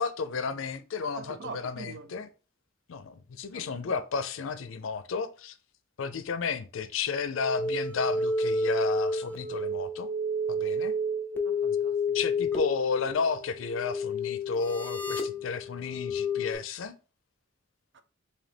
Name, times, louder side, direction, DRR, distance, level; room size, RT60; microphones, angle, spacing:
voice 1, 0.0-2.3 2.9-5.5 6.0-10.1 10.5-10.9 12.1-17.0, left 5 dB, 75° left, 0.5 m, -32 dB
voice 2, 1.0-2.3 3.5-3.9 11.4-12.2 17.9-18.0, right 4 dB, 60° right, 0.5 m, -44 dB
sound 1, 7.4-16.6, left 2 dB, 10° left, 0.5 m, -30 dB
3.9 x 2.7 x 3.3 m
head